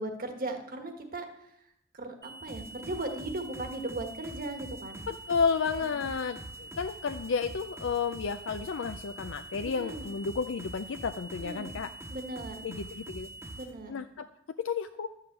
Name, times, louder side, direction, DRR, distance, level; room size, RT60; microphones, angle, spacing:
voice 1, 0.0-1.5 1.9-5.0 5.8-6.0 9.6-10.1 11.4-11.8 12.1-12.6 13.5-13.9, right 2 dB, 50° right, 5 dB, 1.4 m, -38 dB
sound 1, 2.2-13.6, right 2 dB, 20° left, 1.2 m, -47 dB
sound 2, 2.5-13.7, right 1 dB, 15° right, 1.1 m, -46 dB
voice 2, 5.1-11.9 12.6-13.3 13.9-14.3 14.6-15.1, left 5 dB, 70° left, 8 dB, 0.4 m, -32 dB
11.5 x 5.7 x 7.9 m, 0.78 s
head